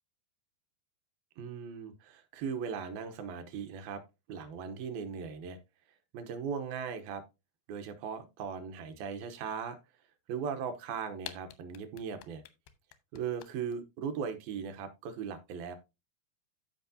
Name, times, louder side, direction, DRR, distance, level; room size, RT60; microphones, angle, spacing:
voice 1, 1.4-4.0 4.3-5.6 6.1-7.2 7.7-9.8 10.3-12.4 13.1-15.8, right 6 dB, 70° right, 8 dB, 2.5 m, -38 dB
sound 1, 11.2-13.7, left 14 dB, 90° left, 3.0 m, -46 dB
14.0 x 5.1 x 2.7 m, 0.25 s
omnidirectional pair, 4.8 m